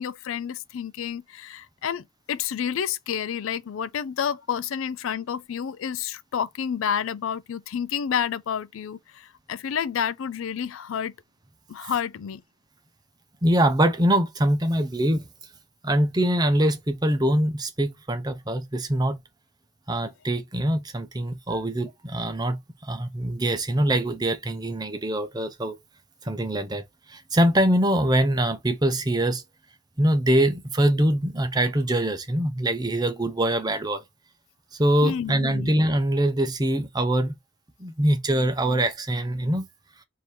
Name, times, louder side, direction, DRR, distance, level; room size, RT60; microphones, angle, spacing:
voice 1, 0.0-11.1 11.7-12.4 21.5-21.6 35.0-35.7, left 8 dB, 75° left, 0.4 m, -30 dB
voice 2, 13.4-15.3 15.8-19.2 19.9-25.7 26.2-26.8 27.1-29.4 30.0-34.0 34.8-37.3 37.8-39.6, right 1 dB, 20° right, 0.6 m, -23 dB
3.3 x 2.7 x 4.4 m
head